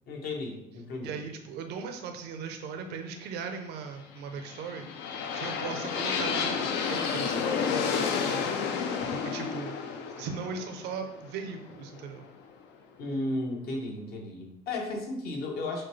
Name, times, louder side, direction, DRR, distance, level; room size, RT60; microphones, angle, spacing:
voice 1, 0.1-1.2 13.0-15.9, left 2 dB, 70° left, 1 dB, 1.0 m, -34 dB
voice 2, 1.0-4.9 5.3-7.5 8.2-8.5 9.1-9.8 10.2-12.3, right 5 dB, 80° right, 6 dB, 0.5 m, -38 dB
sound 1, 4.3-12.3, left 6 dB, 85° left, 0.5 m, -31 dB
6.2 x 2.3 x 3.1 m, 0.80 s
cardioid pair, 110°, 17 cm